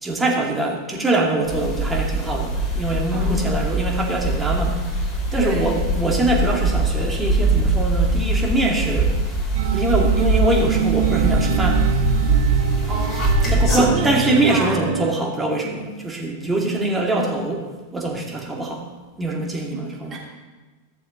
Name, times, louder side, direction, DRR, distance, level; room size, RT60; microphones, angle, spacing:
voice 1, 0.0-4.8 5.3-9.1 9.7-11.9 13.5-18.9 19.2-20.2, right 2 dB, 10° right, -1 dB, 2.2 m, -23 dB
sound 1, 1.5-13.9, right 2 dB, 25° left, 2.8 m, -22 dB
voice 2, 3.1-3.5 5.3-5.7 12.9-14.8 19.7-19.8 20.1-20.2, right 3 dB, 30° right, -2 dB, 2.9 m, -30 dB
sound 2, 9.5-15.1, right 8 dB, 65° right, 0.6 m, -24 dB
14.5 x 7.0 x 3.8 m, 1.2 s
hypercardioid pair, 95°, 0 cm